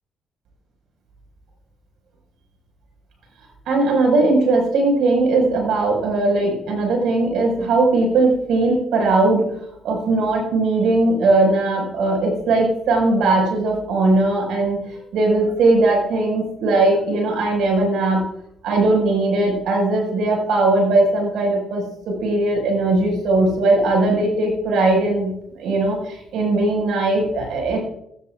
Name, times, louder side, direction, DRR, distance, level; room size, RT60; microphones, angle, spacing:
voice 1, 3.7-9.5 9.8-14.8 15.1-18.2 18.6-27.8, right 2 dB, 80° right, 2 dB, 5.3 m, -19 dB
16.5 x 14.0 x 2.5 m, 0.74 s
cardioid pair, 90°, 0 cm